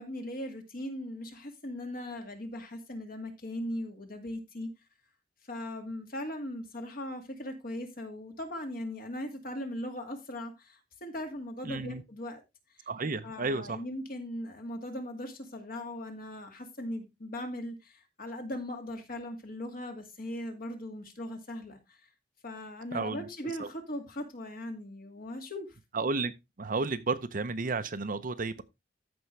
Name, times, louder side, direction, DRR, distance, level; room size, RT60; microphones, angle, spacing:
voice 1, 0.0-4.7 5.4-12.4 12.7-12.9 13.2-22.1 22.4-25.8, left 1 dB, 50° left, 2.2 m, -39 dB
voice 2, 11.7-12.0 12.9-13.8 22.9-23.3 23.6-23.7 25.9-26.3 26.6-28.6, right 3 dB, 45° right, 0.7 m, -32 dB
14.0 x 5.3 x 3.3 m
head